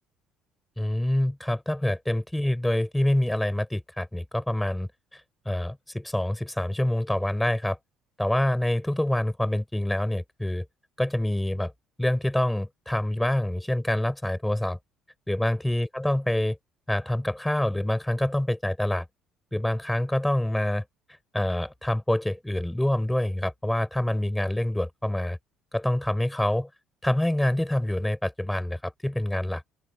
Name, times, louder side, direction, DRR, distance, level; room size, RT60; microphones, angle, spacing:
voice 1, 0.8-7.8 8.2-10.7 11.0-11.7 12.0-14.8 15.3-16.6 16.9-19.1 19.5-20.8 21.3-25.4 25.7-26.7 27.0-29.6, left 1 dB, 5° left, 5.9 m, -26 dB
open air
cardioid pair, 100°, 0 cm